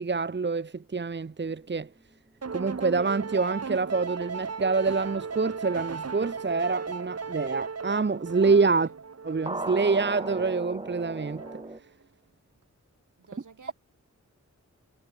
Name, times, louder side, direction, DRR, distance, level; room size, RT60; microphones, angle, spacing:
voice 1, 0.0-1.9 2.5-8.9 9.2-11.4, right 4 dB, 35° right, 1.0 m, -26 dB
sound 1, 2.4-11.8, right 5 dB, 55° right, 1.8 m, -37 dB
sound 2, 9.5-11.8, right 2 dB, 15° right, 2.6 m, -36 dB
voice 2, 13.2-13.7, right 5 dB, 75° right, 7.1 m, -52 dB
wide cardioid pair, 100°, 30 cm